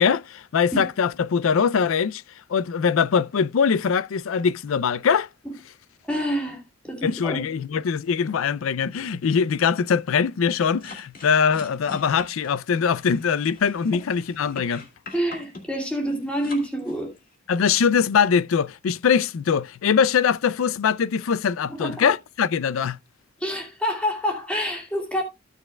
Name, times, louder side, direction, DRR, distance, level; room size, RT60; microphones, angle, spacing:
voice 1, 0.0-2.2 2.5-5.3 7.0-14.8 17.5-23.0, left 6 dB, 75° left, 0.4 m, -22 dB
voice 2, 6.1-7.4 15.1-17.1 21.7-22.1 23.4-25.2, equal, 5° left, 2.6 m, -27 dB
sound 1, 10.6-17.3, left 3 dB, 45° left, 2.3 m, -43 dB
15.5 x 6.6 x 2.2 m
head